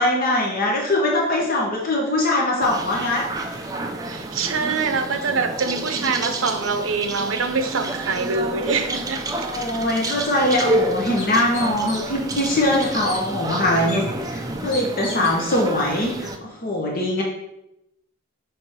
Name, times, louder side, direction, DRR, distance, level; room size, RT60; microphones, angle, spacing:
voice 1, 0.0-3.6 9.4-17.2, left 1 dB, 45° left, -1 dB, 0.9 m, -22 dB
sound 1, 2.6-16.4, right 1 dB, 20° right, 0.4 m, -29 dB
voice 2, 4.0-9.2, right 4 dB, 75° right, 8 dB, 0.6 m, -24 dB
sound 2, 11.2-12.2 12.5-13.2 13.9-14.0 14.7-15.4, left 2 dB, 70° left, 1.7 m, -35 dB
6.3 x 3.4 x 4.4 m, 0.87 s
head